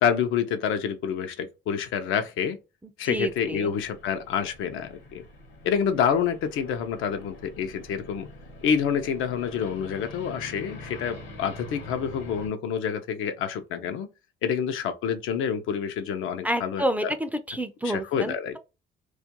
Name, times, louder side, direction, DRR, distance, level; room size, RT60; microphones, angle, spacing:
voice 1, 0.0-2.6 3.0-5.2 5.6-8.3 8.6-14.1 14.4-17.1 17.8-18.6, left 7 dB, 85° left, 0.5 m, -27 dB
voice 2, 3.0-3.7 16.4-18.6, right 1 dB, 10° right, 0.3 m, -29 dB
sound 1, 3.1-12.5, left 1 dB, 65° left, 0.8 m, -45 dB
2.3 x 2.2 x 2.8 m
cardioid pair, 90°, 20 cm